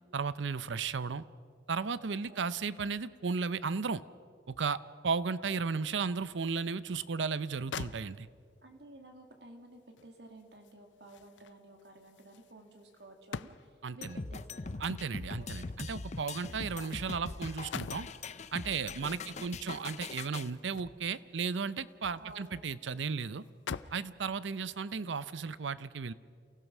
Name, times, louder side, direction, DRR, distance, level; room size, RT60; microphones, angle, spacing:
voice 1, 0.1-1.2 1.7-4.0 4.5-8.3 13.8-14.2 14.8-18.1 18.5-23.4 23.9-26.1, right 5 dB, 85° right, 16 dB, 0.6 m, -35 dB
voice 2, 2.3-2.6 8.6-14.8 15.4-15.8 19.1-19.8 22.2-22.5, right 2 dB, 65° right, 4 dB, 2.3 m, -54 dB
sound 1, 7.3-7.4 7.7-8.6 10.0-13.9 15.0-17.2 17.4-18.2 19.7-21.2 21.7-22.6 22.9-23.0 23.4-24.1 24.8-25.0, left 6 dB, 85° left, 0.5 m, -46 dB
sound 2, 14.0-20.5, left 3 dB, 40° left, 0.6 m, -42 dB
29.0 x 16.0 x 6.1 m, 2.2 s
head